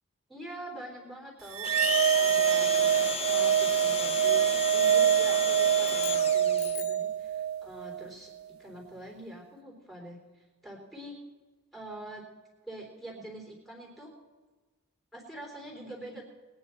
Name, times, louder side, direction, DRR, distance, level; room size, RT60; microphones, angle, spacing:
voice 1, 0.3-8.3 8.6-11.2 11.7-12.3 12.6-14.1 15.1-16.2, right 1 dB, ahead, -3 dB, 3.7 m, -45 dB
sound 1, 1.5-8.1, right 10 dB, 70° right, 0.7 m, -25 dB
Domestic sounds home sounds, 1.6-6.7, left 6 dB, 25° left, 0.9 m, -34 dB
sound 2, 5.8-7.2, left 14 dB, 75° left, 0.8 m, -45 dB
21.5 x 9.7 x 4.4 m, 1.3 s
head